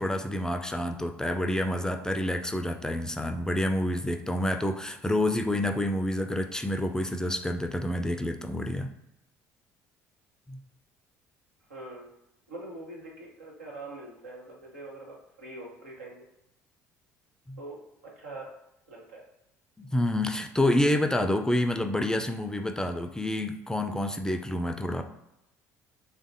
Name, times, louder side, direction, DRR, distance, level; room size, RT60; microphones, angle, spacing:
voice 1, 0.0-8.9 10.5-10.6 17.5-17.6 19.8-25.0, left 1 dB, 10° left, 6 dB, 0.4 m, -28 dB
voice 2, 11.7-12.1 12.5-16.2 17.6-18.5 18.9-19.2, right 2 dB, 90° right, -3 dB, 0.8 m, -43 dB
3.4 x 2.5 x 2.6 m, 0.85 s
hypercardioid pair, 60°, 8 cm